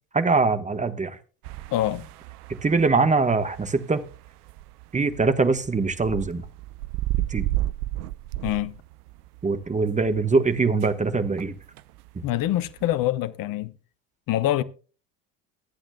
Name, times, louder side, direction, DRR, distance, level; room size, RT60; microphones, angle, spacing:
voice 1, 0.1-1.2 2.6-4.0 4.9-6.4 7.3-7.5 9.4-11.5, right 4 dB, 15° right, 1.3 m, -22 dB
sound 1, 1.4-13.1, right 15 dB, 70° right, 0.7 m, -34 dB
voice 2, 1.7-2.1 8.4-8.8 12.2-13.7 14.3-14.6, left 13 dB, 45° left, 0.9 m, -25 dB
23.0 x 8.7 x 2.3 m
figure-of-eight pair, 60°, 48 cm